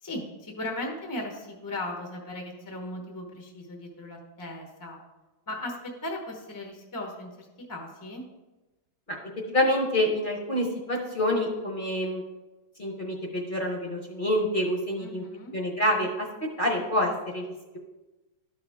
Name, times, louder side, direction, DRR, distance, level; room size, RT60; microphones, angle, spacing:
voice 1, 0.0-5.0 5.5-8.2 15.0-15.6, left 1 dB, 20° left, 1 dB, 0.6 m, -37 dB
voice 2, 9.5-12.2 12.8-15.2 15.5-16.3 16.6-17.8, left 1 dB, 35° left, -1 dB, 0.9 m, -27 dB
12.0 x 4.9 x 3.5 m, 1.1 s
omnidirectional pair, 2.0 m